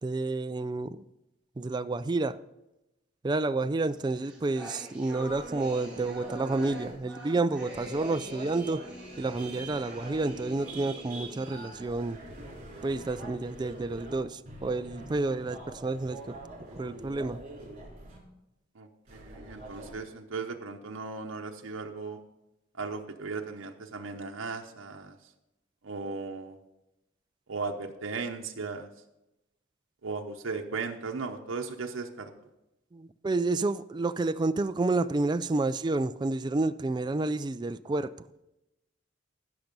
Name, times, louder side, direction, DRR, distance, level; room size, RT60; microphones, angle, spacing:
voice 1, 0.0-1.0 1.6-2.4 3.2-8.8 9.2-12.2 12.8-16.4 16.8-17.4 32.9-38.3, right 3 dB, 20° right, 0.3 m, -30 dB
sound 1, 3.9-11.8, right 1 dB, 5° right, 3.0 m, -45 dB
sound 2, 5.1-7.0 7.7-14.2 14.5-18.2 19.1-19.9, right 1 dB, 40° right, 4.1 m, -44 dB
voice 2, 18.7-22.2 22.8-25.2 25.8-26.6 27.5-28.9 30.0-32.3, right 4 dB, 90° right, 0.8 m, -37 dB
15.5 x 6.0 x 5.3 m
head